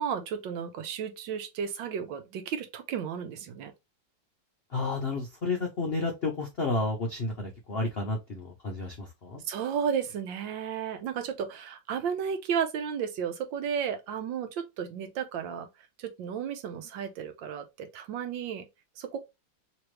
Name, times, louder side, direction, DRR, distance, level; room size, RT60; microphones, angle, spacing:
voice 1, 0.0-3.7 9.5-15.7 16.0-18.7 19.0-19.2, right 7 dB, 75° right, 1.4 m, -33 dB
voice 2, 4.7-9.4, left 3 dB, 65° left, 0.6 m, -31 dB
3.3 x 3.1 x 3.1 m
omnidirectional pair, 2.1 m